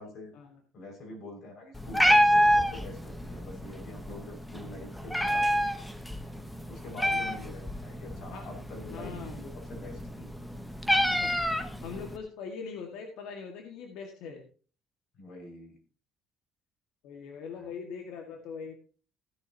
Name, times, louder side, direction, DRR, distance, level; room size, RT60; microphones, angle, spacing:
voice 1, 0.0-0.3 0.7-5.7 6.3-10.3 15.2-15.8 17.5-17.7, left 2 dB, 55° left, 3 dB, 5.8 m, -45 dB
Meow, 1.7-12.2, equal, 5° left, 1.0 m, -28 dB
voice 2, 8.9-9.4 11.1-14.5 17.0-18.7, left 5 dB, 85° left, 3 dB, 1.8 m, -42 dB
16.0 x 10.5 x 2.9 m, 0.37 s
cardioid pair, 150°, 0 cm